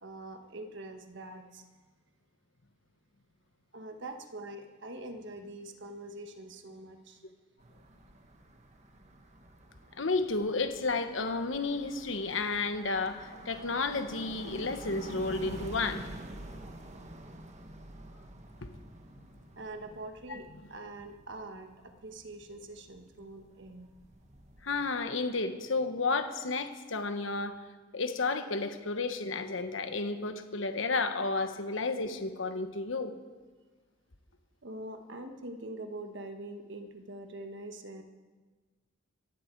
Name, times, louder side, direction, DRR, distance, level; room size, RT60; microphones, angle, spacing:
voice 1, 0.0-1.7 3.7-7.2 19.6-23.9 34.6-38.0, right 2 dB, 60° right, 6 dB, 1.4 m, -44 dB
sound 1, 7.6-24.9, right 1 dB, 35° right, 1.3 m, -48 dB
voice 2, 10.0-16.1 18.6-18.7 20.3-20.4 24.6-27.6 27.9-33.1, left 3 dB, 65° left, 8 dB, 1.2 m, -32 dB
20.0 x 15.0 x 4.7 m, 1.4 s
head